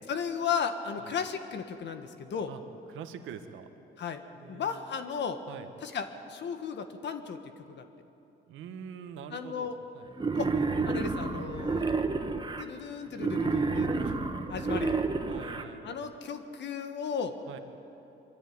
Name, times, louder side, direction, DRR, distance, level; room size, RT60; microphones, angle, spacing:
voice 1, 0.1-2.5 4.0-4.2 4.5-5.4 5.8-7.8 9.3-9.8 10.3-10.5 10.8-11.9 12.6-14.0 14.5-15.0 15.8-17.3, left 6 dB, 65° left, 8 dB, 1.5 m, -35 dB
voice 2, 2.9-3.7 4.3-4.9 5.5-5.7 8.5-10.1 13.9-14.2 15.3-16.0 17.5-17.6, right 8 dB, 90° right, 8 dB, 1.4 m, -45 dB
Wild animals, 10.2-12.6 13.2-15.6, right 4 dB, 25° right, 1.4 m, -30 dB
23.0 x 14.0 x 9.6 m, 2.9 s
cardioid pair, 90°, 20 cm